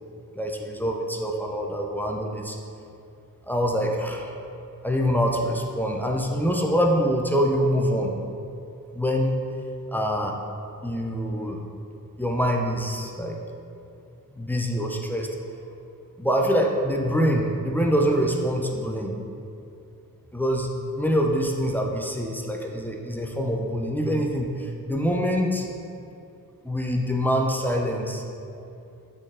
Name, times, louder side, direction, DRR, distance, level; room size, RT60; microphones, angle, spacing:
voice 1, 0.3-2.6 3.5-4.3 4.8-8.2 8.9-9.3 9.9-10.4 10.8-11.6 12.2-13.4 14.3-15.3 16.2-19.1 20.3-20.7 20.9-25.7 26.6-28.2, equal, 5° left, 0 dB, 0.5 m, -25 dB
8.8 x 4.1 x 3.7 m, 2.6 s
wide cardioid pair, 130°, 35 cm